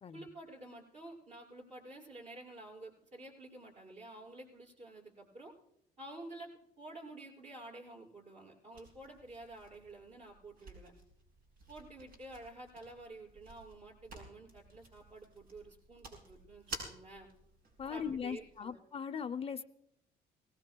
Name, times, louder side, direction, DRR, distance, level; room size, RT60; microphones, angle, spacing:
voice 1, 0.1-5.5 6.0-6.5 6.8-10.9 11.7-17.3 17.9-18.8, right 2 dB, 45° right, -1 dB, 5.8 m, -50 dB
sound 1, 8.7-18.7, right 2 dB, 65° right, 7.0 m, -52 dB
voice 2, 17.8-19.6, left 7 dB, 35° left, 9 dB, 0.6 m, -39 dB
24.5 x 18.5 x 2.3 m, 0.78 s
cardioid pair, 110°, 17 cm